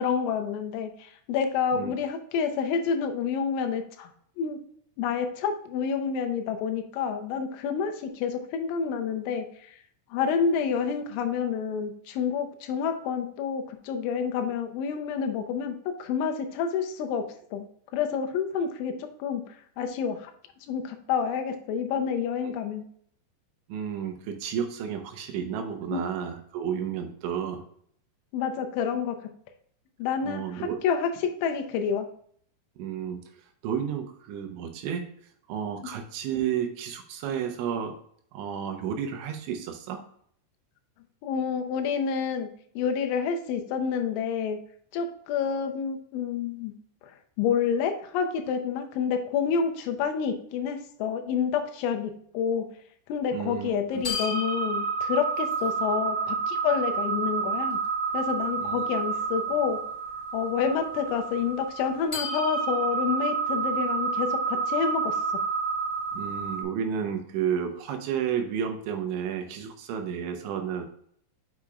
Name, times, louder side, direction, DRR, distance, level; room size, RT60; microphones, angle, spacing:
voice 1, 0.0-4.1 4.4-4.6 5.0-9.8 10.1-17.2 17.5-17.7 17.9-18.9 19.2-20.3 20.7-22.8 25.9-26.0 28.3-29.2 30.0-31.1 31.4-32.1 41.2-42.5 42.8-44.6 44.9-46.7 47.0-52.7 53.1-57.8 58.1-59.8 60.3-65.2, left 6 dB, 80° left, 5 dB, 3.0 m, -28 dB
voice 2, 23.7-27.6 30.2-30.8 32.8-35.0 35.5-37.9 38.3-40.0 53.3-54.0 58.6-59.0 66.1-70.9, right 8 dB, 80° right, 5 dB, 3.1 m, -32 dB
sound 1, 54.0-66.6, right 4 dB, 25° left, 1.5 m, -29 dB
7.1 x 6.5 x 2.3 m, 0.63 s
omnidirectional pair, 5.6 m